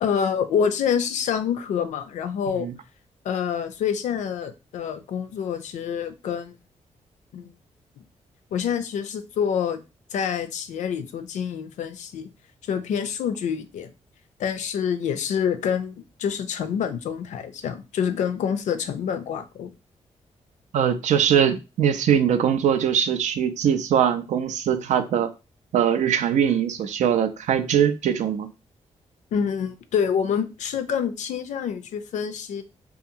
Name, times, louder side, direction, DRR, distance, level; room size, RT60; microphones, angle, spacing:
voice 1, 0.0-2.7 3.2-6.6 7.3-7.5 8.5-9.8 10.1-12.3 12.6-13.9 14.4-19.7 29.3-32.6, left 7 dB, 90° left, 0.4 m, -27 dB
voice 2, 20.7-25.3 25.7-28.5, right 8 dB, 80° right, 0.4 m, -21 dB
2.7 x 2.3 x 2.6 m
wide cardioid pair, 130°, 12 cm